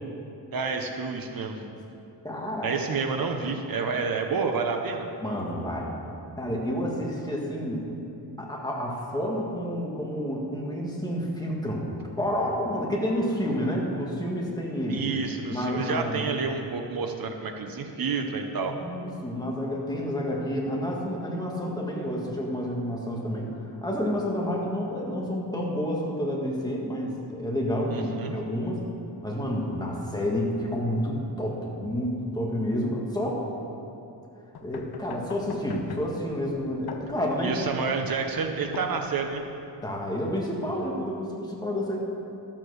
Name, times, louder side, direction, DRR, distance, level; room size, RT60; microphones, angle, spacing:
voice 1, 0.5-1.6 2.6-5.1 14.9-18.8 27.9-28.3 37.4-39.4, right 5 dB, 60° right, 4 dB, 0.9 m, -29 dB
voice 2, 2.2-2.7 5.2-5.9 6.4-7.9 8.4-15.1 15.5-16.3 18.6-23.5 23.8-28.8 29.2-33.4 34.6-37.5 39.8-42.0, equal, 10° left, -2 dB, 1.7 m, -29 dB
sound 1, 34.5-39.5, left 5 dB, 70° left, 1.0 m, -42 dB
13.0 x 7.5 x 6.4 m, 2.9 s
wide cardioid pair, 150°, 39 cm